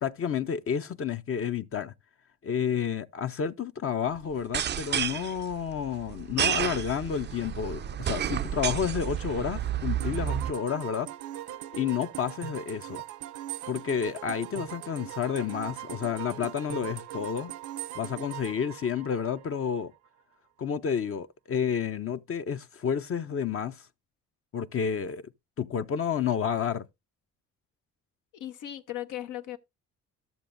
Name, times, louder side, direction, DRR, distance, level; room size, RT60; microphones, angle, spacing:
voice 1, 0.0-1.9 2.4-11.1 11.7-13.0 13.7-17.5 17.9-19.9 20.6-23.9 24.5-25.3 25.6-26.8, left 7 dB, 45° left, 0.7 m, -30 dB
sound 1, 4.4-10.5, right 9 dB, 35° right, 0.4 m, -31 dB
sound 2, 10.0-19.7, right 13 dB, 80° right, 0.7 m, -40 dB
voice 2, 28.3-29.6, left 13 dB, 85° left, 1.1 m, -37 dB
13.5 x 7.0 x 2.6 m
cardioid pair, 90°, 30 cm